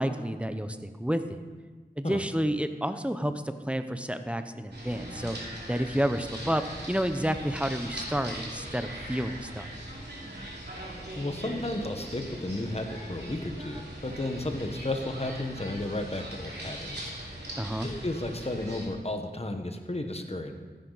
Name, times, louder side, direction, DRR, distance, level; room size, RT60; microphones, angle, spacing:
voice 1, 0.0-1.4 2.0-3.3 3.7-5.4 5.7-9.7 17.6-17.9, equal, 5° right, 9 dB, 0.8 m, -30 dB
sound 1, 4.7-18.9, right 1 dB, 85° right, 2.9 m, -40 dB
voice 2, 11.2-17.1 17.8-20.5, left 1 dB, 40° left, 5 dB, 1.3 m, -33 dB
15.0 x 10.5 x 4.1 m, 1.4 s
wide cardioid pair, 45°, 17 cm